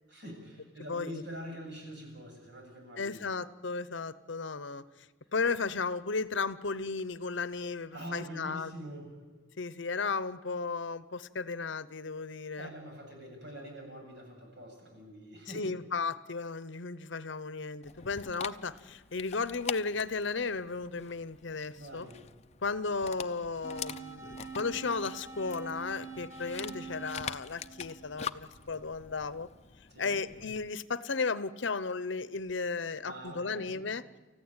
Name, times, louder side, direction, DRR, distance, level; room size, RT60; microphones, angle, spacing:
voice 1, 0.1-3.2 7.9-9.2 12.5-15.7 21.7-22.2 29.9-30.2 33.0-33.9, equal, 60° right, 2 dB, 7.7 m, -44 dB
voice 2, 0.9-1.2 3.0-4.8 5.3-8.7 9.6-12.7 15.5-22.1 22.6-29.5 30.0-34.0, left 4 dB, 65° left, 16 dB, 0.9 m, -34 dB
Dog, 17.8-30.7, left 7 dB, 35° left, 0.7 m, -45 dB
sound 1, 23.6-28.7, right 5 dB, 15° right, 2.1 m, -45 dB
29.5 x 15.0 x 9.0 m, 1.3 s
head